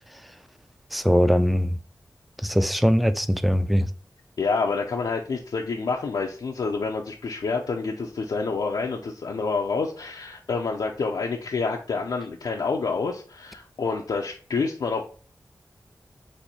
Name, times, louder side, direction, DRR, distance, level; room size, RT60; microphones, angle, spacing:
voice 1, 0.9-1.7 2.4-3.9, equal, ahead, 0.3 m, -21 dB
voice 2, 4.4-15.0, left 4 dB, 85° left, 0.5 m, -28 dB
4.3 x 2.6 x 4.1 m
wide cardioid pair, 85°, 7 cm